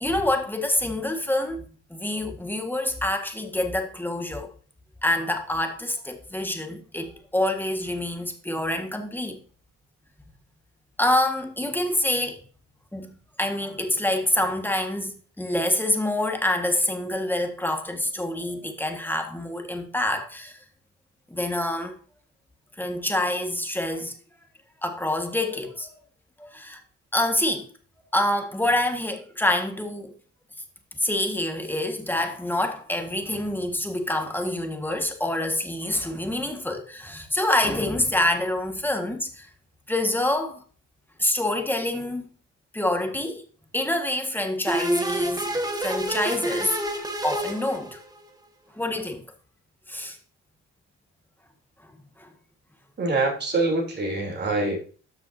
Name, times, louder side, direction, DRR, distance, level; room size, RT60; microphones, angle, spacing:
voice 1, 0.0-1.6 1.9-4.5 5.0-9.4 11.0-12.4 12.9-20.6 21.3-22.0 22.8-24.1 24.8-25.9 26.4-26.8 27.1-27.7 28.1-30.1 31.0-39.5 39.9-40.6 41.2-42.3 42.7-43.4 43.7-45.5 45.8-46.8 47.2-48.0 48.8-49.2 49.9-50.2 52.2-52.3, left 1 dB, 5° left, 1.6 m, -26 dB
sound 1, 44.7-48.3, right 1 dB, 10° right, 1.4 m, -28 dB
voice 2, 53.0-54.8, right 2 dB, 35° right, 3.2 m, -25 dB
13.0 x 6.0 x 2.7 m
cardioid pair, 90°, 30 cm